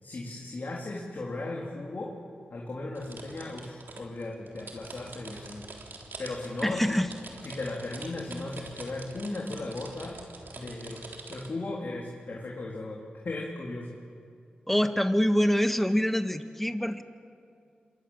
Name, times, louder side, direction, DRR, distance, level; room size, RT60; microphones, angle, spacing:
voice 1, 0.0-2.1 2.5-5.7 6.2-6.8 7.4-10.2 10.6-11.0 11.3-13.0 13.2-13.9, left 2 dB, 60° left, -2 dB, 3.9 m, -36 dB
sound 1, 2.9-11.5, right 3 dB, 75° right, 3.7 m, -45 dB
voice 2, 6.6-7.1 14.7-17.0, equal, 5° left, 9 dB, 1.8 m, -25 dB
27.0 x 23.0 x 7.5 m, 2.4 s
cardioid pair, 45°, 3 cm